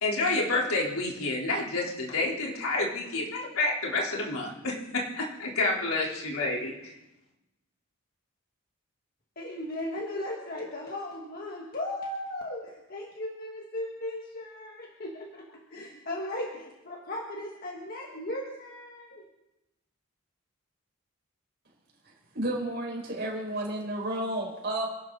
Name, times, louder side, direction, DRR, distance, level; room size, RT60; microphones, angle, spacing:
voice 1, 0.0-6.9, left 2 dB, 85° left, -3 dB, 3.6 m, -29 dB
voice 2, 9.4-19.3, left 1 dB, 45° left, 0 dB, 1.6 m, -37 dB
voice 3, 22.3-24.9, right 1 dB, 50° right, -2 dB, 5.1 m, -31 dB
27.5 x 12.0 x 4.0 m, 0.96 s
head